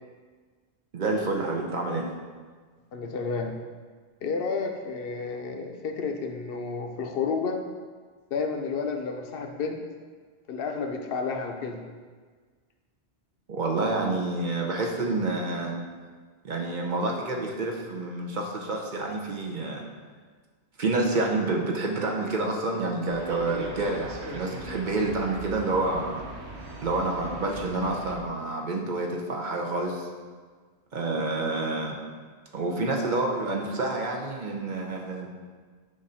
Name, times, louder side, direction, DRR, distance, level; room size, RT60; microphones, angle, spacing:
voice 1, 0.9-2.1 13.5-15.7 16.4-19.8 20.8-26.2 26.8-30.1 30.9-31.9 32.5-35.3, right 2 dB, 50° right, -1 dB, 0.8 m, -28 dB
voice 2, 2.9-3.6 4.2-7.6 8.3-9.8 10.5-11.8, left 4 dB, 65° left, 4 dB, 0.8 m, -31 dB
sound 1, 23.1-28.2, right 1 dB, 80° right, 1.1 m, -39 dB
7.0 x 2.6 x 5.5 m, 1.5 s
omnidirectional pair, 1.1 m